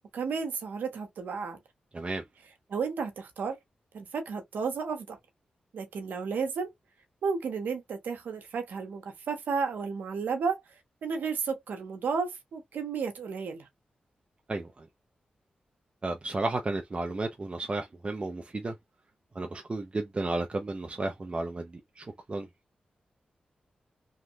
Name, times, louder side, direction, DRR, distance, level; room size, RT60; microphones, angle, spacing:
voice 1, 0.1-1.6 2.7-3.6 3.9-5.2 5.7-6.7 7.2-10.6 11.0-13.7, right 5 dB, 85° right, 0.9 m, -32 dB
voice 2, 1.9-2.2 14.5-14.9 16.0-18.8 19.3-22.5, right 2 dB, 35° right, 0.5 m, -33 dB
3.1 x 2.3 x 2.7 m
cardioid pair, 55°, 3 cm